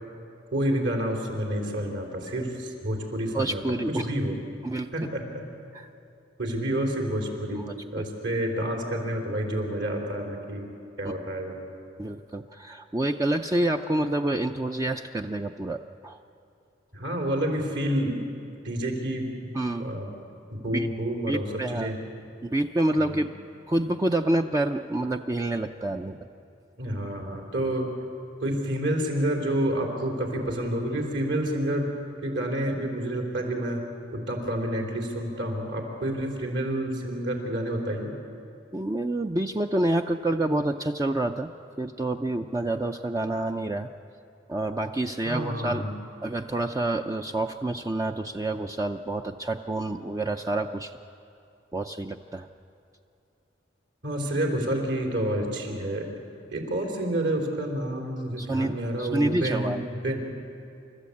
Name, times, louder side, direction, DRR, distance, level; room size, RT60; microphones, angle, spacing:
voice 1, 0.5-3.6 3.9-4.4 4.9-5.2 6.4-10.7 11.0-11.6 16.9-18.2 18.6-19.5 19.8-20.1 20.5-21.5 21.7-22.0 23.0-23.2 26.8-27.9 28.4-31.9 32.2-33.8 34.1-38.1 45.3-45.9 54.0-56.1 56.5-60.3, right 1 dB, 70° right, 1 dB, 3.6 m, -29 dB
voice 2, 3.3-4.1 4.6-4.9 5.7-5.9 7.6-8.0 11.0-11.1 12.0-16.2 19.5-19.9 20.7-20.9 21.3-21.9 22.4-23.3 23.7-26.2 38.7-41.5 41.8-43.9 44.5-45.8 46.2-51.0 51.7-52.5 58.4-59.8, right 1 dB, 15° right, 5 dB, 0.4 m, -28 dB
29.0 x 14.0 x 8.5 m, 2.7 s
head